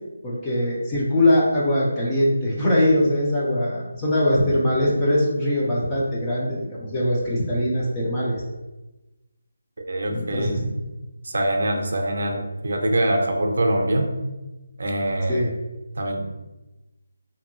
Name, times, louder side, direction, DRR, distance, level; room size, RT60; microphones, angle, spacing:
voice 1, 0.2-8.4 10.1-10.8 15.3-15.5, left 1 dB, 10° left, -7 dB, 0.3 m, -22 dB
voice 2, 9.9-10.6 11.2-14.1 14.8-15.4 16.0-16.2, right 1 dB, 55° right, 2 dB, 0.5 m, -23 dB
2.6 x 2.6 x 2.6 m, 1.1 s
figure-of-eight pair, 175°, 0 cm